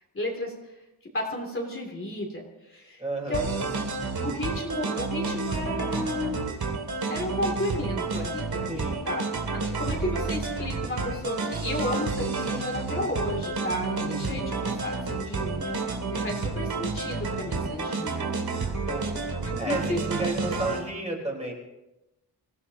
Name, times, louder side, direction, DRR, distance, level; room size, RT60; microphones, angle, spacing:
voice 1, 0.1-0.5 1.1-3.5 4.2-6.4 7.1-9.2 9.6-15.8 16.1-18.5 19.4-20.0 20.5-20.6, left 1 dB, 30° left, -1 dB, 2.8 m, -33 dB
voice 2, 3.0-3.6 8.7-9.1 14.0-14.6 18.8-19.2 19.6-21.5, right 2 dB, 15° right, -1 dB, 4.2 m, -32 dB
sound 1, 3.3-20.8, right 3 dB, 65° right, 2.5 m, -30 dB
26.0 x 16.0 x 2.9 m, 0.95 s
wide cardioid pair, 145°, 41 cm